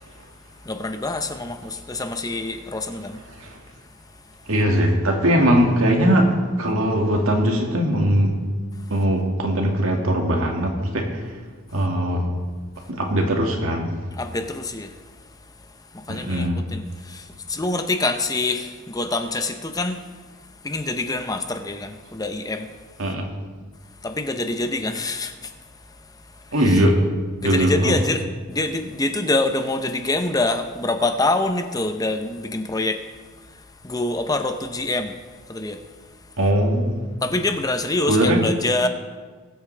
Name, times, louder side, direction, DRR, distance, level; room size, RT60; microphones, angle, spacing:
voice 1, 0.6-3.2 14.1-15.1 15.9-20.0 20.6-22.7 24.0-25.6 25.9-26.8 27.4-33.0 33.4-35.2 35.5-35.8 37.2-38.9, left 2 dB, 15° left, 7 dB, 0.6 m, -26 dB
voice 2, 4.5-6.3 6.6-8.3 8.9-11.2 11.7-12.3 12.9-13.9 16.1-16.6 23.0-23.3 26.5-27.0 27.4-28.0 36.4-37.0 38.1-38.4, equal, 75° right, 1 dB, 2.0 m, -20 dB
20.5 x 8.4 x 3.3 m, 1.5 s
head